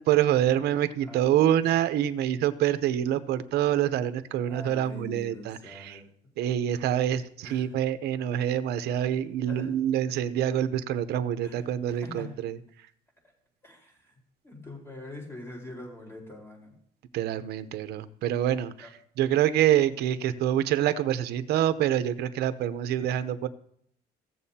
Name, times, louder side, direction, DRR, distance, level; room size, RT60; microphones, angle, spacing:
voice 1, 0.0-6.0 6.4-12.6 17.1-18.7 19.2-23.5, right 11 dB, 75° right, 11 dB, 0.7 m, -26 dB
voice 2, 1.0-1.9 4.4-6.0 7.4-7.8 9.5-9.7 11.4-12.3 13.6-14.1 14.4-16.7 18.8-18.9, left 1 dB, 15° left, -1 dB, 4.4 m, -44 dB
16.5 x 7.4 x 2.8 m, 0.66 s
cardioid pair, 110°, 17 cm